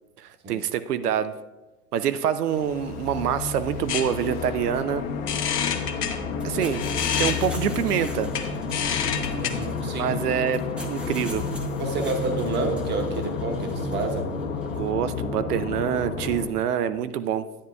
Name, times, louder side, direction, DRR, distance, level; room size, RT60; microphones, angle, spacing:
voice 1, 0.2-1.3 1.9-5.1 6.4-6.8 7.2-8.3 10.0-11.5 14.8-17.4, right 9 dB, 85° right, 12 dB, 0.5 m, -26 dB
sound 1, 2.5-16.5, left 5 dB, 65° left, 1.5 m, -31 dB
sound 2, 2.7-9.5, left 7 dB, 85° left, 0.9 m, -31 dB
sound 3, 6.3-14.9, equal, ahead, 0.7 m, -43 dB
voice 2, 9.3-10.2 11.7-14.3, right 3 dB, 25° right, 4 dB, 1.0 m, -29 dB
10.0 x 9.3 x 2.3 m, 1.1 s
hypercardioid pair, 110°, 45 cm